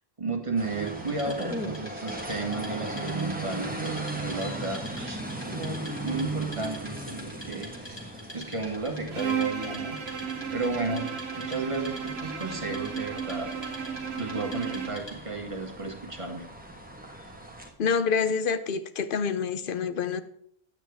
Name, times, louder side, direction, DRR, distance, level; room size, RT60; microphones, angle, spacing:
voice 1, 0.2-8.0 8.3-13.9 14.2-16.5, right 3 dB, 30° right, 1.7 m, -34 dB
sound 1, 0.6-17.7, right 2 dB, 10° right, 1.2 m, -38 dB
Wood, 0.9-15.4, equal, 25° left, 2.3 m, -46 dB
Bowed string instrument, 9.1-15.1, right 7 dB, 85° right, 1.3 m, -34 dB
voice 2, 17.8-20.2, left 6 dB, 60° left, 0.9 m, -27 dB
11.0 x 8.8 x 3.4 m
omnidirectional pair, 1.0 m